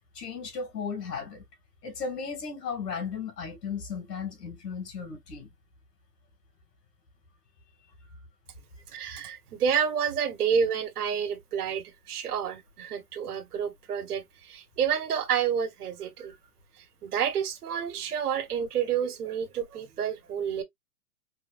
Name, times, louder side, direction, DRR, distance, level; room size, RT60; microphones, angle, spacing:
voice 1, 0.1-1.4 1.8-5.5, left 5 dB, 85° left, 2.6 m, -35 dB
voice 2, 8.9-16.4 16.8-20.6, right 7 dB, 70° right, 1.4 m, -29 dB
4.7 x 2.5 x 2.5 m
hypercardioid pair, 175°, 46 cm